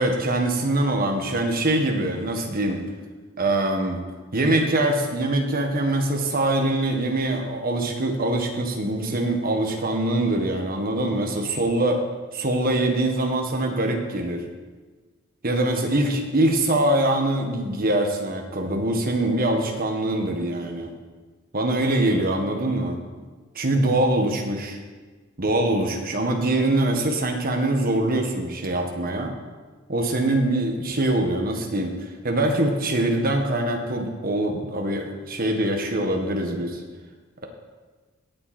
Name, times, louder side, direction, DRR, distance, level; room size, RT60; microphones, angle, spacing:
voice 1, 0.0-2.8 3.4-4.0 4.3-12.0 12.3-14.4 15.4-20.9 21.5-23.0 23.5-24.8 25.4-29.3 29.9-36.8, right 1 dB, 45° right, 3 dB, 1.6 m, -23 dB
18.0 x 7.6 x 4.4 m, 1.3 s
head